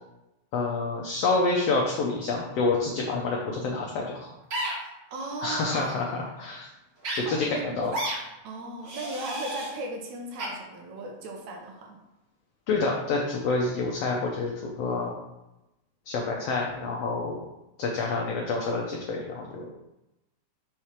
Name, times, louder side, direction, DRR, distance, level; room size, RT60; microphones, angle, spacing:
voice 1, 0.5-4.3 5.4-6.7 7.2-7.9 12.7-15.1 16.1-17.4 17.8-19.7, left 3 dB, 70° left, -1 dB, 1.5 m, -28 dB
sound 1, 4.5-4.7 5.7-5.9 7.0-7.2 7.9-8.2 8.8-9.7 10.4-10.5, right 1 dB, 45° right, 1.6 m, -31 dB
voice 2, 5.1-6.0 7.1-8.0 8.4-12.0, right 2 dB, 75° right, 1 dB, 2.1 m, -37 dB
5.6 x 3.2 x 5.6 m, 0.95 s
omnidirectional pair, 3.5 m